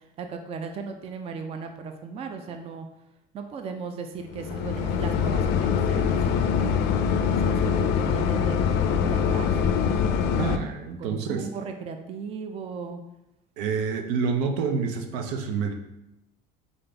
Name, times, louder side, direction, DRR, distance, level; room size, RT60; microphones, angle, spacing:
voice 1, 0.2-2.9 3.3-6.8 7.4-9.5 11.0-13.0, right 5 dB, 30° right, 6 dB, 0.4 m, -36 dB
sound 1, 4.3-10.6, left 7 dB, 55° left, 0.4 m, -24 dB
voice 2, 10.4-11.5 13.6-15.7, right 5 dB, 80° right, 5 dB, 0.7 m, -28 dB
3.9 x 3.9 x 3.4 m, 0.89 s
supercardioid pair, 120°, 20 cm